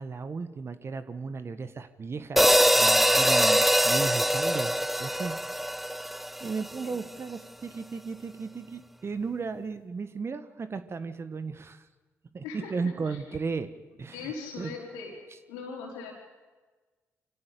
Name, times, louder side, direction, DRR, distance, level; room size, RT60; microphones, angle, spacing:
voice 1, 0.0-2.5 2.8-5.4 6.4-11.9 12.3-13.7 14.0-14.7, right 4 dB, 45° right, 11 dB, 1.5 m, -35 dB
sound 1, 2.4-6.7, equal, ahead, 0.6 m, -23 dB
voice 2, 12.4-13.2 14.1-15.1 15.5-16.1, left 5 dB, 90° left, 0 dB, 4.9 m, -39 dB
24.5 x 16.0 x 8.6 m, 1.3 s
hypercardioid pair, 50°, 6 cm